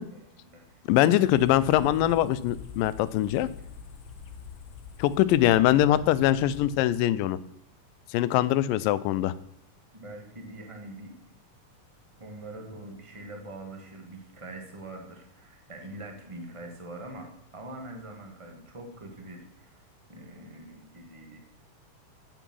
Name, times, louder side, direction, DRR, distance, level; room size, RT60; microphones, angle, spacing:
voice 1, 0.1-1.3 3.4-3.7 5.5-6.3 9.9-11.1 12.2-19.8 20.1-21.4, right 1 dB, 50° right, 3 dB, 0.3 m, -43 dB
voice 2, 0.9-3.5 5.0-7.4 8.1-9.3, left 13 dB, 90° left, 16 dB, 2.3 m, -22 dB
sound 1, 1.2-6.9, left 7 dB, 70° left, 1.5 m, -45 dB
9.1 x 8.2 x 6.2 m, 0.78 s
omnidirectional pair, 3.8 m